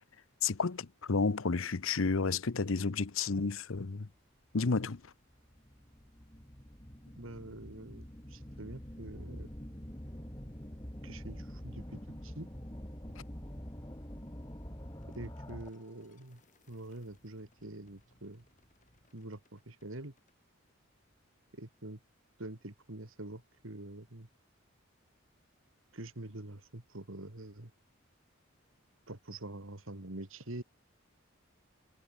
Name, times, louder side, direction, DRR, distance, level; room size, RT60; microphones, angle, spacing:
voice 1, 0.4-4.1 4.5-5.0, left 4 dB, 70° left, 0.8 m, -31 dB
sound 1, 4.5-4.6 5.3-16.0, equal, 20° left, 2.4 m, -46 dB
voice 2, 7.2-9.5 11.0-12.5 15.2-16.4 16.7-18.4 19.1-20.1 21.5-22.0 22.4-24.3 25.9-27.7 29.1-30.6, right 1 dB, 75° right, 2.2 m, -45 dB
sound 2, 14.9-20.4, left 2 dB, 35° left, 6.7 m, -69 dB
head